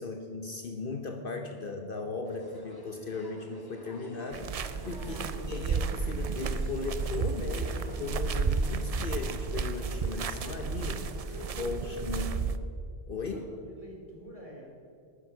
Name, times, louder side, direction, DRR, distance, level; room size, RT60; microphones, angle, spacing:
voice 1, 0.0-5.2 5.5-11.0 11.6-12.3 13.1-13.5, left 3 dB, 55° left, 4 dB, 1.0 m, -37 dB
sound 1, 2.2-11.5, left 1 dB, 20° left, 1.0 m, -51 dB
sound 2, 4.3-12.6, right 5 dB, 60° right, 0.3 m, -32 dB
voice 2, 5.0-5.6 10.8-12.5 13.1-14.7, right 1 dB, 30° right, -2 dB, 2.9 m, -47 dB
12.5 x 9.6 x 5.7 m, 2.4 s
omnidirectional pair, 1.2 m